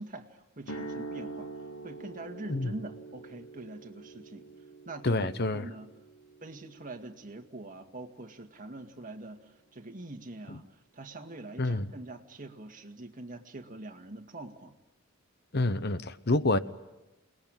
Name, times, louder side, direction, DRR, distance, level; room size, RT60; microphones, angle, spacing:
voice 1, 0.0-1.5 1.8-4.5 4.9-5.9 6.4-10.7 10.9-14.7, right 2 dB, 40° right, 2.0 m, -44 dB
sound 1, 0.6-8.6, right 3 dB, 80° left, 1.4 m, -45 dB
voice 2, 5.0-5.6 10.5-10.6 11.6-11.9 15.5-16.6, left 2 dB, 55° left, 1.0 m, -28 dB
29.0 x 20.5 x 9.1 m
head